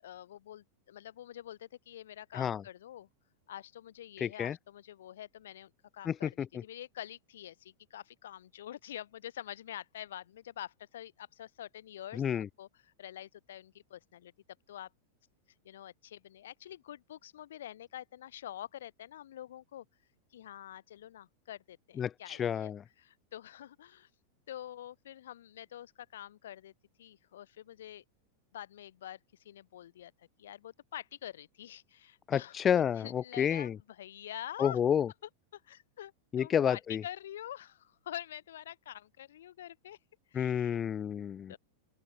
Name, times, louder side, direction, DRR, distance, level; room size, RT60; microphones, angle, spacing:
voice 1, 0.0-3.1 3.5-14.3 14.7-14.9 15.6-19.8 20.3-24.1 24.5-26.7 27.0-28.0 28.5-29.2 29.4-34.8 35.5-40.0 40.3-40.8 41.5-41.6, left 11 dB, 60° left, 6.0 m, -46 dB
voice 2, 4.2-4.6 6.1-6.3 12.2-12.5 22.0-22.8 32.3-33.8 34.6-35.1 36.3-37.0 40.3-41.5, left 8 dB, 25° left, 0.4 m, -30 dB
open air
figure-of-eight pair, 90°, 0 cm